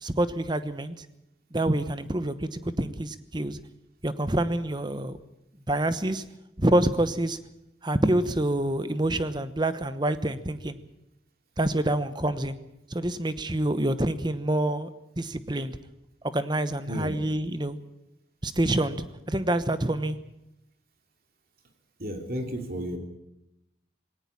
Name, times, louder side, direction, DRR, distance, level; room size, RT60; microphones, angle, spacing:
voice 1, 0.0-1.1 1.5-3.6 4.0-5.2 5.7-6.2 6.6-7.4 7.8-10.8 11.6-12.6 12.9-14.9 15.2-15.8 16.2-17.8 18.4-20.2, right 1 dB, 25° right, 12 dB, 1.0 m, -27 dB
voice 2, 22.0-23.0, equal, 50° right, 4 dB, 2.9 m, -32 dB
19.0 x 18.0 x 8.6 m, 0.88 s
head